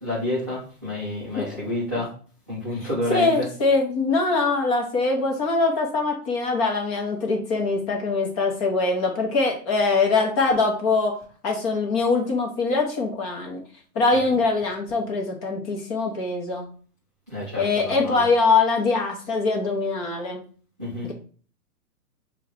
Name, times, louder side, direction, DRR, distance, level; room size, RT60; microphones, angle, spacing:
voice 1, 0.0-2.1 2.5-3.5 17.3-18.2 20.8-21.1, left 1 dB, 15° right, 0.3 m, -29 dB
voice 2, 3.1-11.2 11.4-13.6 13.9-16.7 17.6-20.4 21.0-21.1, left 3 dB, 25° left, 0.8 m, -23 dB
5.0 x 2.4 x 3.6 m
hypercardioid pair, 145°, 47 cm